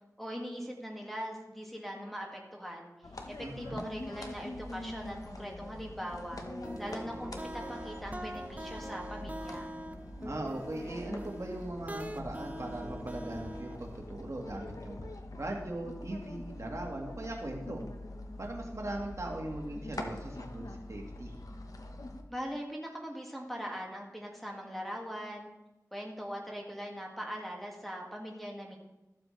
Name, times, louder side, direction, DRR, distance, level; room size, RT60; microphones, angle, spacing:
voice 1, 0.2-2.9 3.3-6.4 6.8-9.7 22.3-25.5 25.9-28.8, equal, ahead, 0 dB, 1.9 m, -41 dB
sound 1, 3.0-22.2, left 1 dB, 70° left, 1.0 m, -44 dB
voice 2, 3.4-3.8 10.2-15.0 15.4-17.8 18.4-21.4, right 1 dB, 55° right, 1 dB, 1.6 m, -39 dB
sound 2, 6.4-14.0, right 1 dB, 25° right, 0.7 m, -43 dB
14.0 x 7.5 x 3.2 m, 0.98 s
wide cardioid pair, 50°, 6 cm